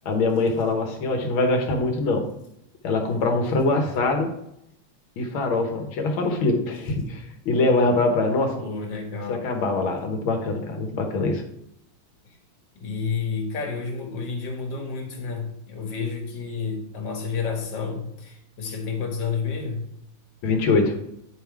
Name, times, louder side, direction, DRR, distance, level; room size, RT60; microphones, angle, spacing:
voice 1, 0.1-2.3 2.8-4.3 5.2-8.6 9.3-11.4 20.4-21.0, left 3 dB, 75° left, 4 dB, 1.8 m, -23 dB
voice 2, 8.6-9.4 12.8-19.9, left 5 dB, 55° left, 2 dB, 1.9 m, -30 dB
9.2 x 3.5 x 4.6 m, 0.77 s
omnidirectional pair, 2.3 m